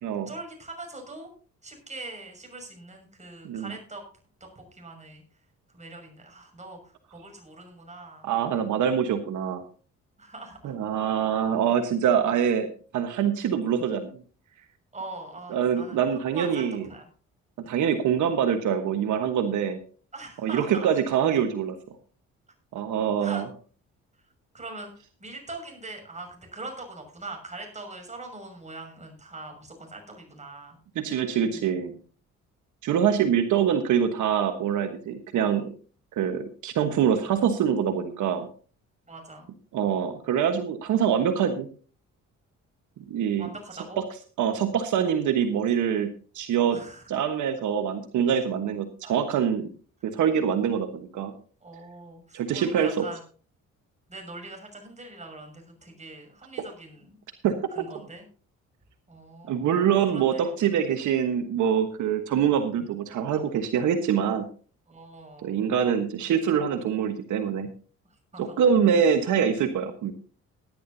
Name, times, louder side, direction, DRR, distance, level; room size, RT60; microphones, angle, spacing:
voice 1, 0.3-1.3 1.6-4.0 4.4-5.2 5.7-8.3 10.2-10.8 14.9-16.0 16.3-17.1 17.6-17.8 20.1-20.9 23.2-23.4 24.5-30.8 31.5-31.6 39.1-39.5 43.4-44.0 46.7-47.0 49.0-49.1 51.6-53.2 54.1-57.2 57.7-58.2 59.1-60.5 64.9-65.6 68.3-68.6, right 2 dB, 25° right, 3 dB, 6.3 m, -42 dB
voice 2, 8.2-9.6 10.6-12.7 12.9-14.1 15.5-16.8 17.7-19.8 20.4-21.8 22.7-23.5 30.9-31.9 32.8-35.7 36.1-38.5 39.7-41.7 43.1-43.5 44.4-46.8 47.1-49.7 50.0-51.3 52.3-53.1 57.4-57.8 59.5-64.5 65.4-67.7 68.4-70.1, right 8 dB, 80° right, 7 dB, 1.3 m, -24 dB
17.5 x 11.0 x 2.8 m, 0.39 s
cardioid pair, 90°, 30 cm